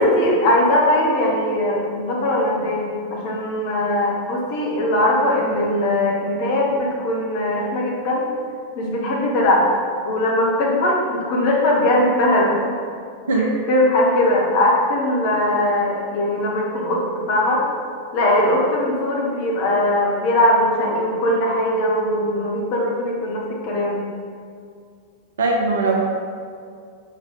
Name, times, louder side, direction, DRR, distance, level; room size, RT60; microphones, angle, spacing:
voice 1, 0.0-8.3 8.8-9.7 10.0-12.6 13.3-17.6 18.1-24.1, left 1 dB, 45° left, -2 dB, 1.3 m, -20 dB
voice 2, 25.4-25.9, right 3 dB, 65° right, 0 dB, 0.8 m, -19 dB
5.7 x 4.6 x 3.8 m, 2.2 s
figure-of-eight pair, 90°, 0 cm